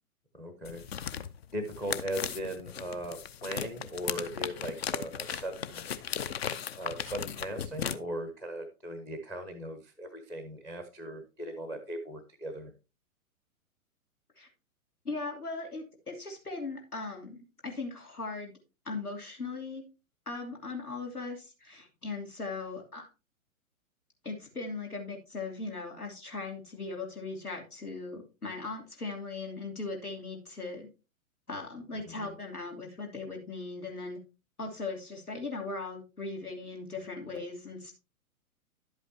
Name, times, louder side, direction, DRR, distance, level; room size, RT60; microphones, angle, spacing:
voice 1, 0.3-0.8 1.5-5.8 6.8-12.7 32.0-32.3, right 1 dB, 5° left, 9 dB, 0.6 m, -38 dB
sound 1, 0.6-8.0, left 8 dB, 45° left, 0.7 m, -37 dB
voice 2, 15.0-18.5 18.8-19.8 20.3-23.1 24.2-30.9 31.5-34.2 34.6-37.9, left 3 dB, 85° left, 3 dB, 3.0 m, -39 dB
11.0 x 8.3 x 2.8 m, 0.30 s
figure-of-eight pair, 115°, 44 cm